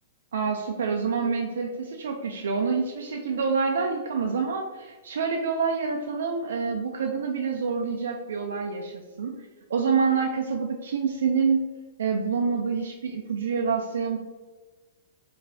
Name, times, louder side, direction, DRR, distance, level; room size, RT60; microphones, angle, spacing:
voice 1, 0.3-9.3 9.7-11.7 12.0-14.2, right 5 dB, 90° right, 2 dB, 0.4 m, -27 dB
4.3 x 3.2 x 2.7 m, 1.3 s
hypercardioid pair, 175°, 0 cm